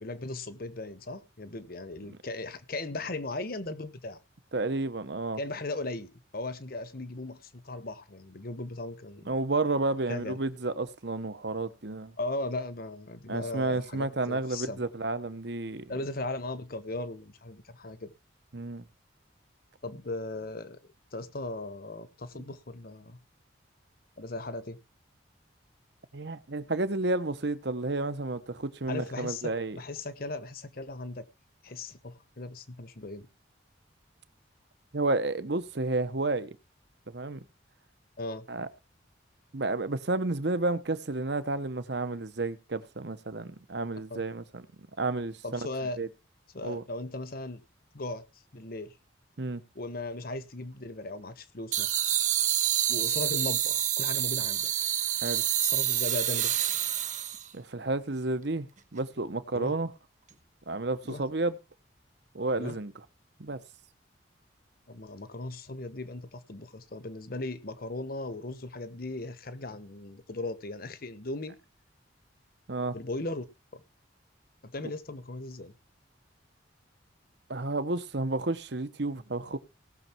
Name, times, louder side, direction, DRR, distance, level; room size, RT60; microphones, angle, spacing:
voice 1, 0.0-4.2 5.4-9.3 10.1-10.4 12.2-14.8 15.9-18.1 19.8-20.8 21.1-23.2 24.2-24.8 28.9-31.2 31.6-33.3 38.2-38.5 44.1-44.2 45.4-46.0 46.5-47.6 47.9-48.2 48.5-48.9 49.7-51.9 52.9-54.7 55.6-56.5 59.5-59.7 61.0-61.2 62.6-62.8 64.9-71.5 72.9-73.4 73.7-73.8 74.6-75.7, left 2 dB, 50° left, 1.2 m, -37 dB
voice 2, 4.5-5.4 9.3-12.1 13.3-15.9 18.5-18.8 26.1-29.8 34.9-36.6 37.1-37.4 38.5-38.7 39.5-44.6 45.0-45.7 46.0-46.1 46.6-46.8 49.4-49.6 55.2-55.4 57.5-58.7 58.9-59.9 60.7-61.6 62.3-62.9 63.4-63.6 72.7-73.0 77.5-79.6, right 2 dB, 60° right, 1.0 m, -31 dB
sound 1, 51.7-57.5, right 11 dB, 40° right, 1.2 m, -28 dB
18.0 x 6.6 x 4.5 m
head